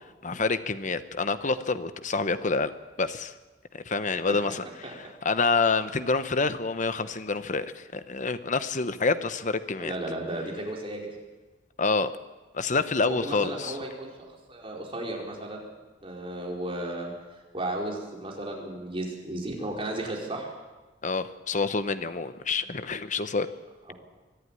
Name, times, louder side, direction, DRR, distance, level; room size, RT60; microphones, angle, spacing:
voice 1, 0.2-2.7 3.0-3.3 3.7-9.9 11.8-12.1 12.5-13.8 21.0-23.5, left 4 dB, 40° left, 12 dB, 1.0 m, -27 dB
voice 2, 9.8-11.1 13.1-15.7 16.0-17.1 17.5-20.5, right 1 dB, 30° right, -1 dB, 4.4 m, -34 dB
23.5 x 11.5 x 9.8 m, 1.2 s
head